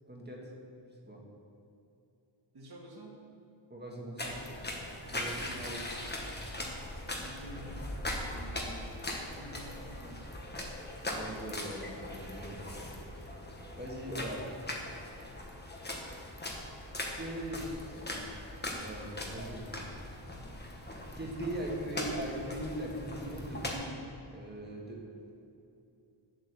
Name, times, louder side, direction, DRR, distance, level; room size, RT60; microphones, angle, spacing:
voice 1, 0.1-0.5 1.0-1.2 3.7-4.4 5.1-5.8 11.1-12.6 13.7-14.4 17.1-18.2 18.8-19.8 21.2-25.0, right 1 dB, 20° right, -2 dB, 1.6 m, -40 dB
voice 2, 2.5-3.2 5.1-5.6 7.0-10.2, right 1 dB, 50° right, -1 dB, 2.1 m, -49 dB
sound 1, 4.2-23.7, left 1 dB, 20° left, 1.3 m, -40 dB
8.1 x 7.9 x 6.7 m, 2.7 s
wide cardioid pair, 135°, 48 cm